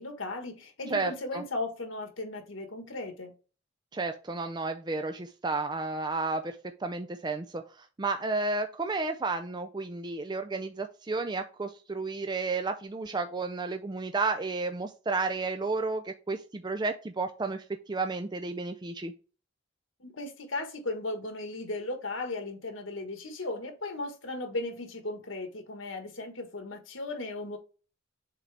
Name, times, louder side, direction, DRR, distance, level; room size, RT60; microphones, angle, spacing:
voice 1, 0.0-3.3 20.0-27.6, left 2 dB, 80° left, 1.5 m, -36 dB
voice 2, 0.9-1.4 3.9-19.1, right 3 dB, 20° right, 0.4 m, -32 dB
7.5 x 3.8 x 3.4 m
head